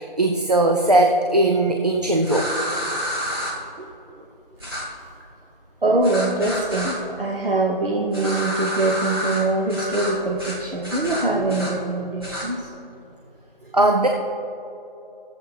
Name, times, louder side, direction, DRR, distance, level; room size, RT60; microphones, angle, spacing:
voice 1, 0.0-2.5 13.7-14.1, right 1 dB, 45° right, 3 dB, 0.4 m, -19 dB
sound 1, 2.2-3.5 4.6-4.8 6.0-6.9 8.1-9.4 9.7-10.1 10.4-10.6 10.8-11.7 12.2-12.4, equal, 25° right, 1.4 m, -29 dB
voice 2, 5.8-12.7 13.6-13.7, right 2 dB, 70° right, -1 dB, 1.0 m, -23 dB
13.5 x 7.6 x 3.4 m, 3.0 s
figure-of-eight pair, 175°, 29 cm